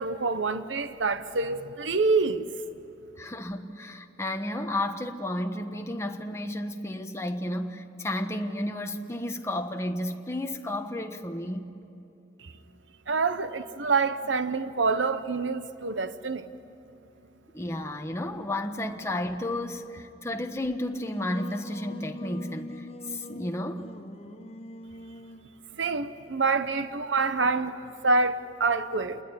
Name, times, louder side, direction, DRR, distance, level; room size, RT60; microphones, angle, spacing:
voice 1, 0.0-2.5 12.4-12.5 13.1-16.5 25.8-27.8 28.0-29.2, right 4 dB, 80° right, 0.9 m, -26 dB
voice 2, 3.2-11.7 17.5-23.9, left 1 dB, 15° left, 1.2 m, -32 dB
Singing, 20.7-25.5, left 1 dB, 35° left, 0.9 m, -42 dB
27.5 x 20.5 x 10.0 m
head